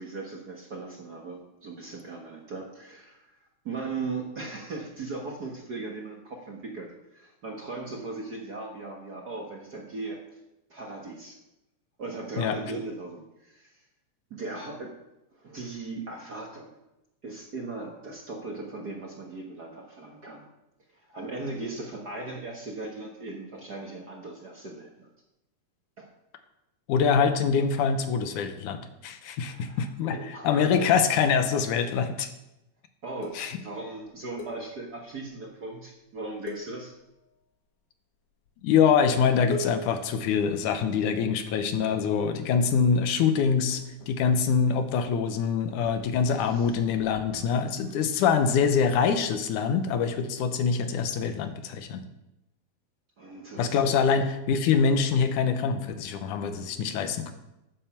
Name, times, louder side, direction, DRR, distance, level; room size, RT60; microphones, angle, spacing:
voice 1, 0.0-10.4 10.7-11.4 12.0-13.8 14.3-14.9 15.3-16.8 17.2-20.4 20.9-25.1 26.0-26.1 29.4-31.0 33.0-36.9 46.3-46.7 47.3-48.0 53.2-53.9, right 3 dB, 45° right, 1 dB, 1.3 m, -38 dB
voice 2, 26.9-30.2 30.4-32.3 33.4-33.6 38.6-43.8 44.1-52.0 53.6-57.3, left 6 dB, 90° left, 8 dB, 2.5 m, -24 dB
sound 1, 33.2-35.2 35.5-35.7 36.0-36.2 36.5-37.5 38.3-38.8 39.1-39.2 39.5-41.5 42.1-42.8 43.0-49.3, left 3 dB, 60° left, 2.4 m, -43 dB
9.3 x 9.1 x 7.0 m, 0.92 s
omnidirectional pair, 3.5 m